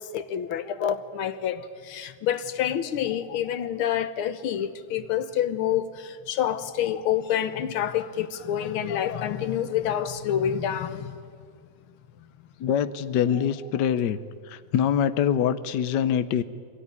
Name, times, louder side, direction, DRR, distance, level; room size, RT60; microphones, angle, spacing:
voice 1, 0.0-11.2, left 9 dB, 90° left, 1.8 m, -28 dB
voice 2, 12.6-14.2 14.5-16.4, left 8 dB, 65° left, 1.3 m, -24 dB
25.0 x 17.0 x 9.7 m
omnidirectional pair, 2.2 m